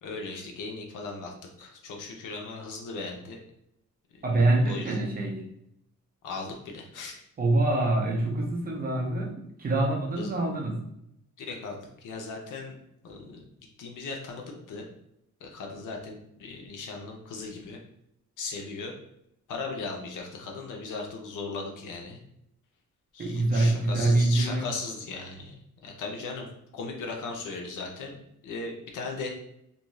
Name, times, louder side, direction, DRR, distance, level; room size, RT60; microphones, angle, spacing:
voice 1, 0.0-3.4 4.1-4.2 4.7-5.1 6.2-7.2 10.2-10.4 11.4-12.8 13.0-13.5 13.8-14.9 15.4-17.8 18.4-18.9 19.5-22.2 23.1-25.5 25.8-26.5 26.7-29.3, left 3 dB, 85° left, 1 dB, 0.7 m, -37 dB
voice 2, 4.2-5.5 7.4-10.8 23.2-24.6, right 2 dB, 30° right, -1 dB, 0.6 m, -25 dB
2.6 x 2.3 x 3.1 m, 0.76 s
wide cardioid pair, 150°, 30 cm